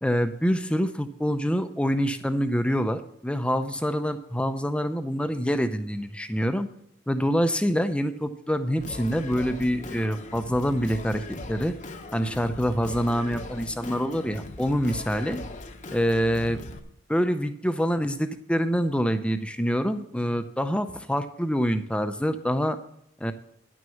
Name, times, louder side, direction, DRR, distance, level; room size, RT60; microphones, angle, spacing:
voice 1, 0.0-6.7 7.1-11.2 11.5-11.7 12.1-15.4 15.9-16.6 17.1-22.8 23.2-23.3, equal, 5° left, 9 dB, 0.5 m, -26 dB
Singing, 8.8-16.8, left 2 dB, 35° left, 0.9 m, -40 dB
10.5 x 6.2 x 7.1 m, 0.70 s
head